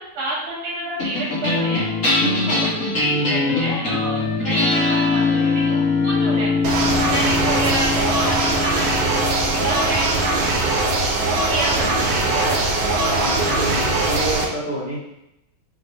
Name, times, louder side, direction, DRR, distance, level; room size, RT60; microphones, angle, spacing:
voice 1, 0.0-1.9 2.5-6.5 7.0-10.1 10.5-10.6 11.5-13.2, right 1 dB, 85° right, -5 dB, 1.8 m, -29 dB
Wind instrument woodwind instrument, 0.8-4.4 4.7-8.6, left 4 dB, 85° left, 1.5 m, -36 dB
sound 1, 1.0-11.6, left 3 dB, 45° left, 1.1 m, -22 dB
sound 2, 6.6-14.5, right 2 dB, 70° right, 0.9 m, -21 dB
voice 2, 13.0-15.0, right 1 dB, 70° left, -9 dB, 0.5 m, -27 dB
5.1 x 2.0 x 3.0 m, 0.86 s
omnidirectional pair, 2.2 m